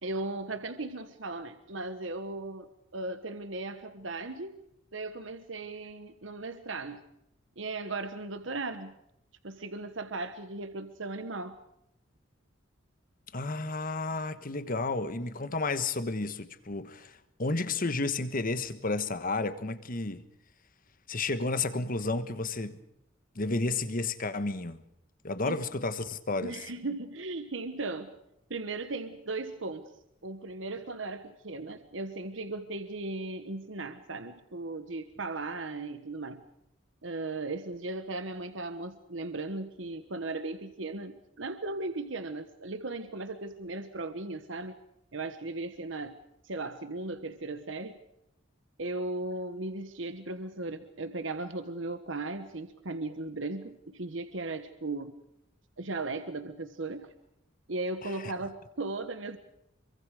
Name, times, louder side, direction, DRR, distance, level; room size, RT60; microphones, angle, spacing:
voice 1, 0.0-4.6 4.9-7.0 7.6-8.9 9.4-11.6 25.5-25.6 26.4-28.1 28.5-29.9 30.2-36.4 37.0-44.7 45.1-46.2 46.4-48.0 48.8-55.2 55.8-57.1 57.7-59.4, right 2 dB, 70° right, 1.3 m, -37 dB
voice 2, 13.3-20.2 21.1-22.8 23.3-24.8 25.2-26.6 58.0-58.3, left 3 dB, 45° left, 1.3 m, -32 dB
26.5 x 24.0 x 5.0 m
head